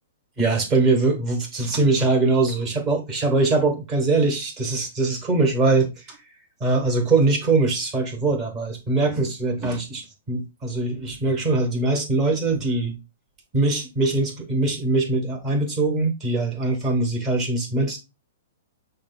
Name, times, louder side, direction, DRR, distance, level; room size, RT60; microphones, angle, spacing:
voice 1, 0.4-6.2 6.6-13.0 13.5-18.0, right 3 dB, 20° right, 1.2 m, -22 dB
6.2 x 2.2 x 3.8 m
hypercardioid pair, 160°, 0 cm